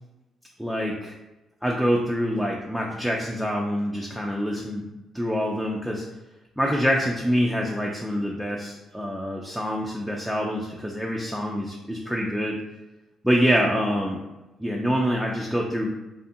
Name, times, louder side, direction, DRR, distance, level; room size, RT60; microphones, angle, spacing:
voice 1, 0.6-1.1 1.6-4.8 5.1-6.1 6.6-12.6 13.2-14.2 14.6-15.9, equal, ahead, -2 dB, 0.3 m, -25 dB
2.5 x 2.4 x 2.6 m, 1.0 s
cardioid pair, 90°, 0 cm